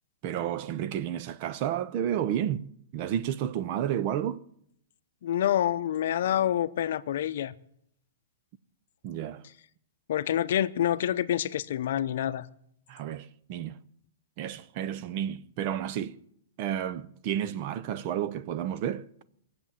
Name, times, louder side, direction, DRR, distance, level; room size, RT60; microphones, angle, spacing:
voice 1, 0.2-2.7 2.9-4.4 9.0-9.4 12.9-13.8 14.4-16.2 16.6-19.1, right 10 dB, 35° right, 0.6 m, -31 dB
voice 2, 5.2-7.5 10.1-12.5, left 11 dB, 60° left, 0.7 m, -27 dB
23.0 x 7.8 x 7.3 m
hypercardioid pair, 160°, 0 cm